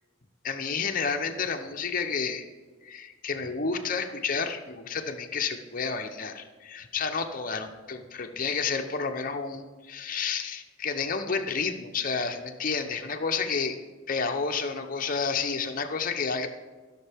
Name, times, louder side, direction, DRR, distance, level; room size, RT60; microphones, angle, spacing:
voice 1, 0.4-2.5 2.8-13.8 14.1-16.5, left 5 dB, 45° left, 5 dB, 0.8 m, -30 dB
15.5 x 6.6 x 3.5 m, 1.4 s
head